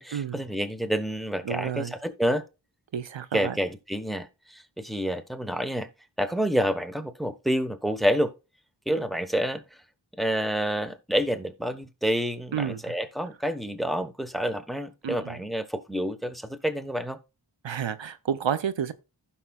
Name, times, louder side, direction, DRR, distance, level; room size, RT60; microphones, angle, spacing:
voice 1, 0.0-2.4 3.3-5.9 6.2-8.3 8.9-9.6 10.2-17.2, equal, ahead, 1.0 m, -28 dB
voice 2, 1.4-1.9 2.9-3.6 12.5-12.9 15.0-15.4 17.6-18.9, right 8 dB, 80° right, 0.7 m, -30 dB
15.0 x 5.8 x 2.3 m
wide cardioid pair, 55°, 45 cm